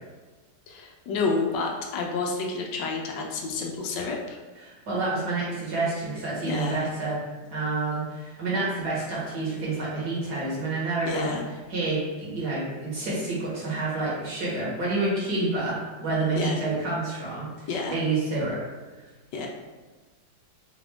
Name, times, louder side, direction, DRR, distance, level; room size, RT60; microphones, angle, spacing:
voice 1, 0.7-4.4 6.5-6.9 11.1-11.4 16.4-16.5 17.7-18.0 19.3-19.5, left 4 dB, 75° left, 1 dB, 1.2 m, -29 dB
voice 2, 4.6-7.2 7.5-11.4 11.7-18.6, right 3 dB, 65° right, -7 dB, 1.9 m, -28 dB
4.2 x 2.5 x 3.4 m, 1.3 s
omnidirectional pair, 1.9 m